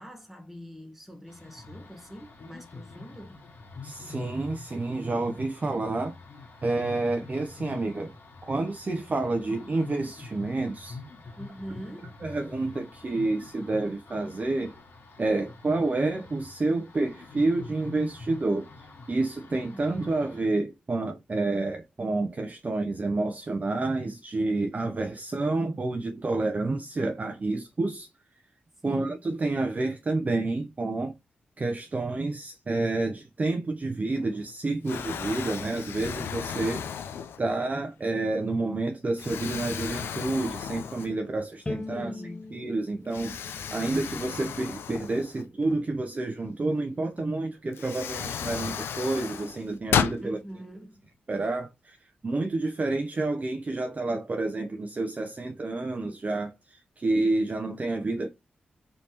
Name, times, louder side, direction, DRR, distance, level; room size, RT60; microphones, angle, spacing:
voice 1, 0.0-3.4 11.4-12.1 19.7-19.8 28.8-29.2 41.9-42.6 50.2-51.0, equal, 5° right, 1.5 m, -43 dB
sound 1, 1.3-20.4, left 4 dB, 65° left, 1.5 m, -46 dB
voice 2, 3.8-6.1 6.6-8.1 8.4-11.0 12.2-14.7 15.2-18.7 19.1-28.1 28.8-31.1 31.6-36.8 37.4-42.1 42.5-50.4 51.3-52.0 52.2-58.3, right 2 dB, 40° right, 0.6 m, -29 dB
Explosion, 34.2-34.5 34.9-37.7 38.3-38.5 39.2-41.4 41.8-41.9 43.1-45.8 47.2-47.3 47.7-50.2, left 8 dB, 85° left, 0.4 m, -33 dB
Bowed string instrument, 41.7-44.9, left 2 dB, 25° left, 0.6 m, -40 dB
3.3 x 2.9 x 2.9 m
supercardioid pair, 45°, 4 cm